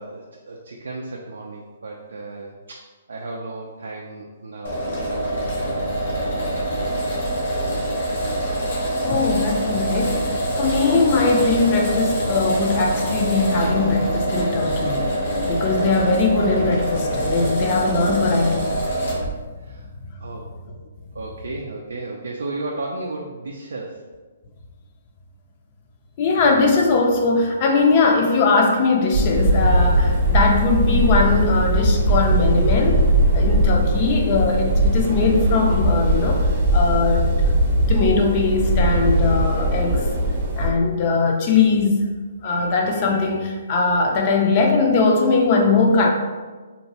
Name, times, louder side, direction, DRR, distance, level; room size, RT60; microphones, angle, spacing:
voice 1, 0.0-2.8 3.1-5.9 6.3-6.7 19.6-19.9 20.2-20.5 21.1-24.0, right 2 dB, 80° right, -1 dB, 0.3 m, -34 dB
sound 1, 4.6-19.3, right 1 dB, 85° left, 1.1 m, -25 dB
voice 2, 9.0-18.9 26.2-37.5 37.9-40.1 40.5-42.0 42.4-46.1, left 3 dB, 40° left, 2 dB, 0.4 m, -20 dB
sound 2, 29.1-40.7, right 1 dB, 40° right, 0.6 m, -19 dB
2.8 x 2.2 x 2.8 m, 1.3 s
hypercardioid pair, 140°, 0 cm